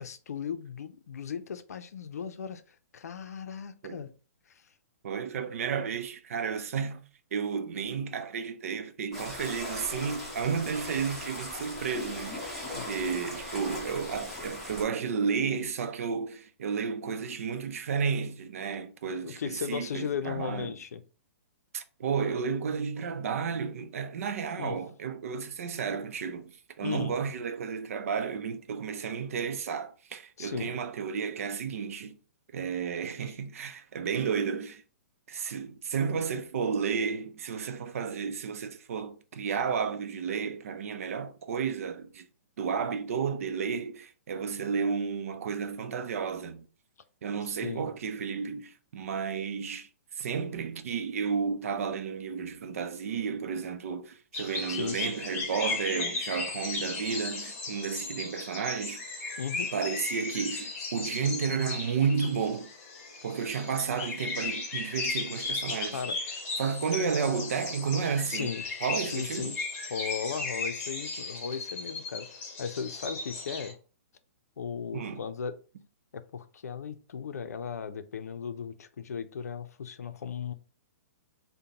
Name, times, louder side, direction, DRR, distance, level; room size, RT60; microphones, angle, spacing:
voice 1, 0.0-4.1 4.5-4.6 12.7-12.9 19.2-21.0 24.6-24.8 26.8-27.1 30.4-30.7 47.4-47.9 54.7-55.1 59.4-59.7 65.9-66.2 68.3-68.6 69.0-69.6 69.9-73.7 74.6-75.5 76.1-80.5, left 7 dB, 85° left, 0.5 m, -36 dB
voice 2, 5.0-7.0 7.3-20.7 21.7-32.2 32.5-34.8 35.3-42.2 42.6-46.7 47.2-49.9 50.2-59.0 59.7-62.7 63.2-66.0 66.6-68.5 68.8-69.5 74.9-75.2, right 6 dB, 65° right, 0.6 m, -32 dB
sound 1, 9.1-14.8, left 1 dB, 5° left, 1.5 m, -39 dB
sound 2, 54.3-73.7, left 3 dB, 30° left, 1.3 m, -36 dB
5.0 x 2.2 x 2.8 m
hypercardioid pair, 150°, 8 cm